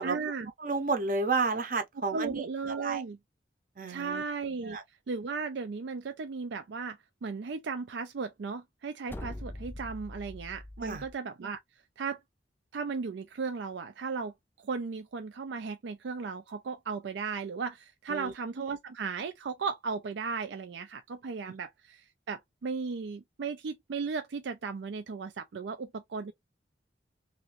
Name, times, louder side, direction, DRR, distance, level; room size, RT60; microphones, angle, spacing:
voice 1, 0.0-0.5 2.1-3.2 3.9-4.8 5.1-11.6 12.0-12.2 12.7-14.3 14.6-26.3, right 5 dB, 80° right, 0.4 m, -36 dB
voice 2, 0.6-3.0 3.8-4.2 4.6-4.8 10.8-11.0 18.1-18.3, right 3 dB, 50° right, 0.7 m, -31 dB
sound 1, 9.1-11.2, left 1 dB, 10° left, 0.4 m, -42 dB
2.9 x 2.5 x 3.0 m
head